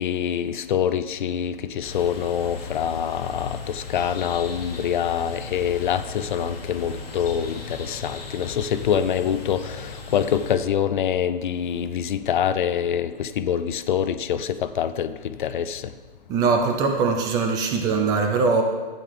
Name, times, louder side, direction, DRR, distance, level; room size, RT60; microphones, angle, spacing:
voice 1, 0.0-15.9, left 9 dB, 55° left, 0.5 m, -25 dB
sound 1, 1.8-10.6, left 4 dB, 85° left, 1.8 m, -37 dB
voice 2, 16.3-18.6, right 4 dB, 15° right, 0.5 m, -21 dB
12.0 x 8.8 x 3.3 m
hypercardioid pair, 145°, 29 cm